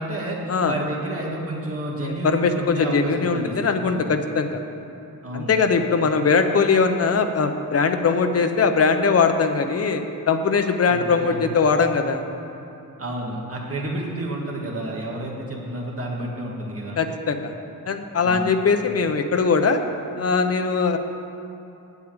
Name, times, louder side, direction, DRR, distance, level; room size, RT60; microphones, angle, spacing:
voice 1, 0.0-0.4 0.7-3.6 3.9-4.1 5.2-5.6 10.9-11.3 13.0-17.0 18.2-18.5, right 1 dB, 40° right, -2 dB, 1.8 m, -30 dB
voice 2, 2.0-4.6 5.3-12.2 17.0-17.5 17.9-19.8 20.2-21.0, left 5 dB, 45° left, 7 dB, 0.7 m, -21 dB
8.5 x 8.1 x 8.7 m, 2.7 s
wide cardioid pair, 170°, 35 cm